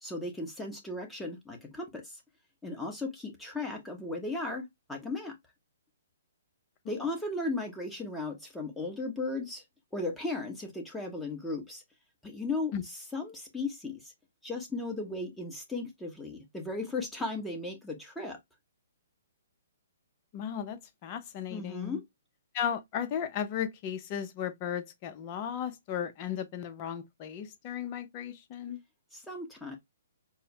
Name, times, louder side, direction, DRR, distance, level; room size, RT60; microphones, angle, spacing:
voice 1, 0.0-2.2 2.6-5.3 6.9-9.6 9.9-11.8 12.2-12.7 13.1-14.1 14.4-18.4 21.5-22.0 29.1-29.8, left 2 dB, 5° left, 1.0 m, -36 dB
voice 2, 20.3-22.0 22.5-28.8, left 9 dB, 35° left, 0.7 m, -35 dB
4.5 x 2.1 x 3.2 m
hypercardioid pair, 145°, 0 cm